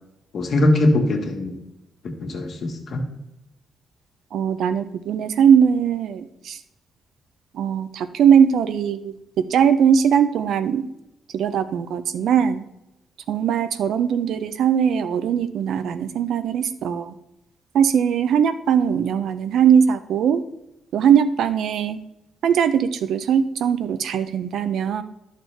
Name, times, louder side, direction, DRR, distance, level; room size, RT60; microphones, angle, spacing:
voice 1, 0.3-1.6 2.2-3.0, left 1 dB, 60° left, 2 dB, 1.7 m, -21 dB
voice 2, 4.3-6.6 7.5-10.9 11.3-12.6 13.3-17.1 17.7-20.4 20.9-22.0 22.4-25.0, right 8 dB, 75° right, 11 dB, 0.6 m, -20 dB
11.0 x 6.6 x 3.3 m, 0.89 s
cardioid pair, 70°, 0 cm